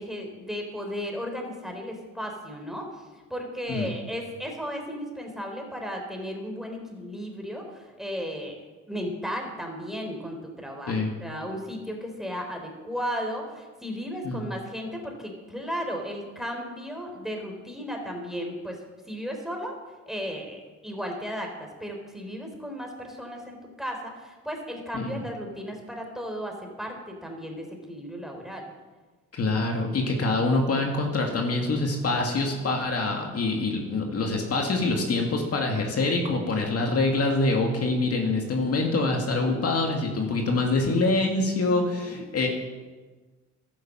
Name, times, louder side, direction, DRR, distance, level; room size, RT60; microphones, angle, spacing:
voice 1, 0.0-2.9 3.3-8.6 8.9-18.8 19.1-19.8 20.1-28.7 41.7-42.2, equal, ahead, 2 dB, 3.5 m, -35 dB
voice 2, 29.3-42.5, left 2 dB, 50° left, 1 dB, 2.3 m, -25 dB
12.0 x 10.0 x 7.5 m, 1.3 s
cardioid pair, 90°, 30 cm